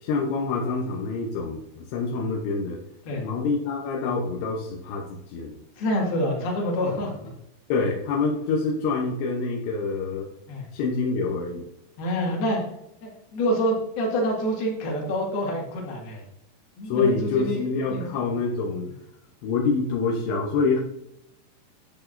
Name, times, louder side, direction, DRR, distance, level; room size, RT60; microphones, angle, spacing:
voice 1, 0.0-2.8 3.2-5.5 7.7-10.3 10.7-11.7 16.9-18.9 19.4-20.8, left 4 dB, 80° left, -1 dB, 2.5 m, -26 dB
voice 2, 5.8-7.1 10.5-10.6 12.0-12.6 13.0-16.2 16.8-18.2, equal, 60° left, -1 dB, 3.2 m, -27 dB
11.0 x 6.7 x 2.6 m, 0.81 s
omnidirectional pair, 5.8 m